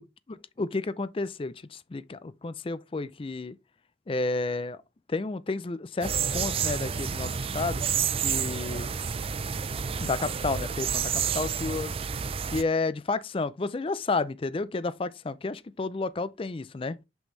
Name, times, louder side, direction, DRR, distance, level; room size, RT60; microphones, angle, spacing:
voice 1, 0.3-3.6 4.1-4.8 5.1-7.8 8.2-8.9 10.0-11.9 12.5-17.0, left 3 dB, 30° left, 0.4 m, -31 dB
sound 1, 6.0-12.6, right 7 dB, 30° right, 0.4 m, -30 dB
6.2 x 5.4 x 3.1 m
head